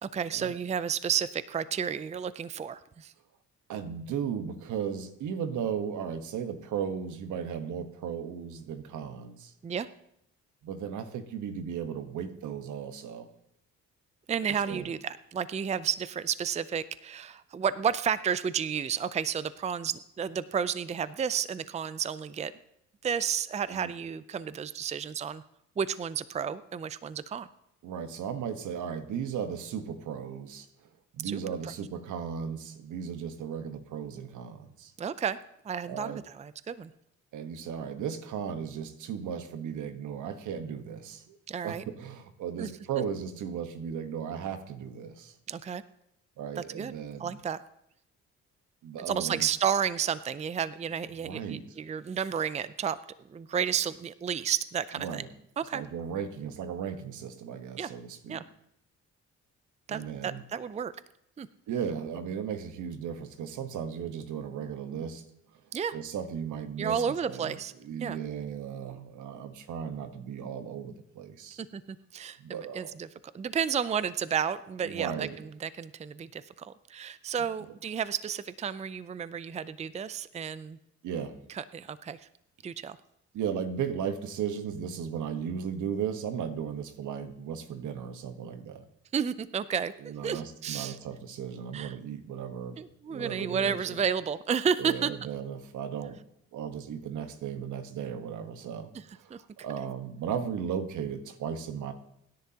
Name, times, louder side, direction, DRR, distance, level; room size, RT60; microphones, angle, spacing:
voice 1, 0.0-3.1 9.6-9.9 14.3-22.5 23.0-25.4 25.8-27.5 31.2-31.7 35.0-35.4 35.6-36.9 41.5-41.8 42.6-42.7 45.5-45.8 46.6-46.9 47.2-47.6 49.1-53.0 53.3-55.2 55.6-55.8 57.8-57.9 58.3-58.4 59.9-60.9 61.4-61.5 65.7-66.0 66.8-67.7 68.0-68.2 71.6-73.1 73.3-80.8 81.5-82.2 82.6-83.0 89.1-91.0 91.7-92.0 92.8-95.1 99.3-99.4, right 7 dB, 25° right, 15 dB, 0.5 m, -32 dB
voice 2, 3.7-9.5 10.6-13.3 14.7-14.9 23.7-23.9 27.8-30.7 31.1-34.9 35.9-36.2 37.3-41.4 41.6-45.3 46.4-47.3 48.8-49.5 51.2-51.6 55.0-55.3 55.7-58.4 59.9-60.4 61.7-65.2 65.9-67.6 67.8-71.6 72.4-72.9 74.8-75.4 81.0-81.4 83.3-88.8 90.0-92.8 93.1-94.0 94.8-96.2 96.5-98.9 99.2-99.3 99.6-101.9, right 7 dB, 80° right, 9 dB, 1.3 m, -36 dB
24.5 x 10.5 x 2.9 m, 0.76 s
cardioid pair, 90°, 30 cm